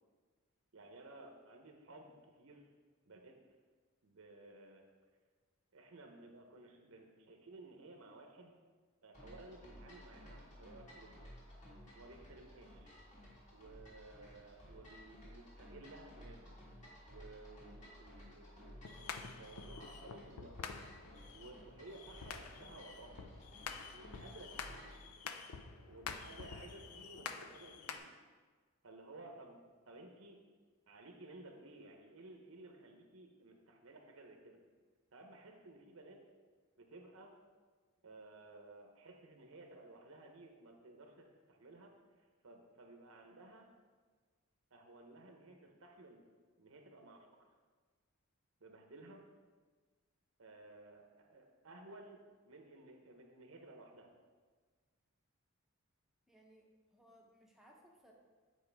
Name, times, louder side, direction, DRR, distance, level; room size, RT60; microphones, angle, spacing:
voice 1, 0.7-2.7 3.0-3.6 4.0-4.8 5.7-8.6 9.0-11.3 11.9-12.9 13.5-16.5 17.1-20.6 21.3-23.2 23.9-24.9 25.9-28.1 28.8-29.6 29.9-30.4 30.9-34.6 35.1-36.2 36.8-37.3 38.0-41.9 42.4-43.7 44.7-46.2 46.6-47.3 48.6-49.2 50.4-54.1, right 2 dB, 70° right, 3 dB, 0.8 m, -56 dB
sound 1, 9.1-25.0, equal, 35° left, 1.8 m, -56 dB
sound 2, 18.8-28.0, left 6 dB, 90° left, 0.5 m, -48 dB
voice 2, 56.3-58.1, equal, ahead, -1 dB, 0.8 m, -64 dB
8.4 x 4.6 x 3.4 m, 1.5 s
head